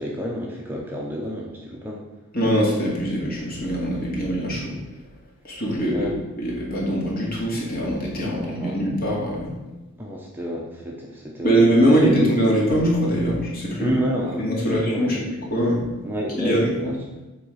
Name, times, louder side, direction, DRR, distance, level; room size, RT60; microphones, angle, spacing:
voice 1, 0.0-2.0 5.9-6.2 8.2-9.0 10.0-12.3 13.8-15.4 16.0-17.0, equal, 10° right, -2 dB, 0.8 m, -29 dB
voice 2, 2.3-4.7 5.4-9.5 11.4-13.9 14.4-15.2 15.5-15.8 16.4-16.9, equal, 45° left, -4 dB, 2.4 m, -22 dB
8.2 x 3.8 x 6.4 m, 1.1 s
head